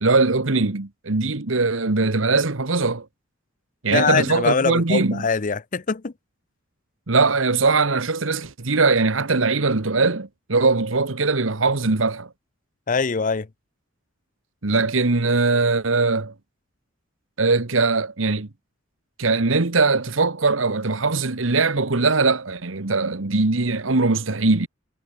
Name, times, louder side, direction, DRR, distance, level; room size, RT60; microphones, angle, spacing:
voice 1, 0.0-3.0 3.8-5.2 7.1-12.3 14.6-16.3 17.4-18.5 19.2-24.7, right 3 dB, 80° right, 1.4 m, -21 dB
voice 2, 3.9-6.1 12.9-13.5, left 5 dB, 40° left, 0.6 m, -23 dB
head